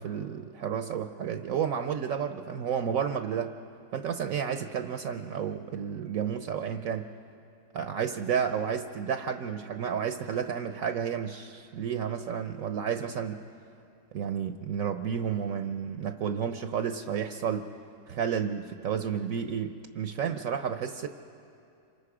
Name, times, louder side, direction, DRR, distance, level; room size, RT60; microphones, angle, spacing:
voice 1, 0.0-3.5 3.9-7.1 7.7-13.4 14.1-17.7 18.1-21.1, right 7 dB, 65° right, 8 dB, 1.0 m, -31 dB
27.5 x 25.0 x 4.9 m, 2.5 s
omnidirectional pair, 1.6 m